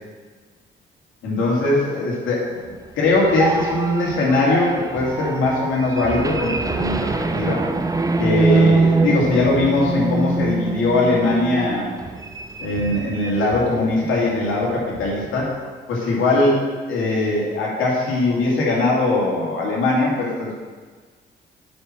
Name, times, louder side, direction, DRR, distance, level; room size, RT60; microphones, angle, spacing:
voice 1, 1.2-7.6 8.2-11.9 12.6-15.5 15.9-20.5, left 2 dB, 80° left, -3 dB, 2.6 m, -21 dB
sound 1, 2.9-13.9 14.2-14.4 14.7-15.5, right 3 dB, 15° right, 0.6 m, -24 dB
9.3 x 4.6 x 6.2 m, 1.5 s
cardioid pair, 90°, 20 cm